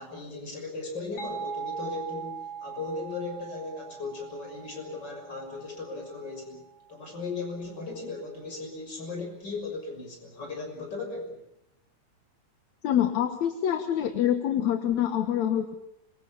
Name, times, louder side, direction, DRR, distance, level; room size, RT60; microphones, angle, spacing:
voice 1, 0.0-6.6 6.9-11.4, left 3 dB, 35° left, 3 dB, 6.8 m, -37 dB
sound 1, 1.2-6.6, right 7 dB, 50° left, 4.4 m, -40 dB
voice 2, 12.8-15.7, left 10 dB, 70° left, 8 dB, 2.5 m, -26 dB
25.5 x 23.0 x 7.2 m, 0.80 s
omnidirectional pair, 3.4 m